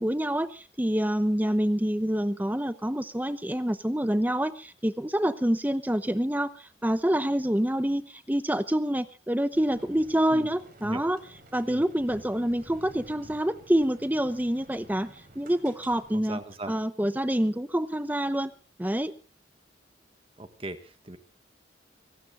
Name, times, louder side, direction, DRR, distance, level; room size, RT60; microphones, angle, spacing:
voice 1, 0.0-11.2 11.5-16.4 16.7-18.5 18.8-19.1, equal, 10° right, 13 dB, 0.8 m, -27 dB
sound 1, 9.5-16.2, right 1 dB, 50° right, 4.6 m, -52 dB
voice 2, 16.1-16.7 20.4-21.2, right 1 dB, 30° right, 9 dB, 1.6 m, -38 dB
26.5 x 18.5 x 2.5 m, 0.34 s
head